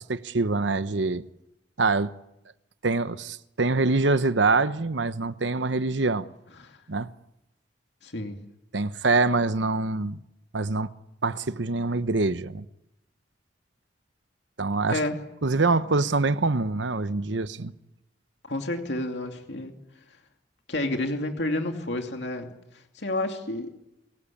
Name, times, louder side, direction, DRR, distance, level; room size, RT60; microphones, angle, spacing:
voice 1, 0.1-1.2 1.8-2.1 2.8-6.3 6.9-7.1 8.7-10.2 10.5-10.9 11.2-12.6 14.6-15.0 15.4-17.7, right 3 dB, 80° right, 1.0 m, -25 dB
voice 2, 8.0-8.4 14.9-15.1 18.4-19.7 20.7-22.6 22.9-23.7, left 1 dB, 65° left, 2.6 m, -30 dB
28.0 x 20.0 x 8.6 m
head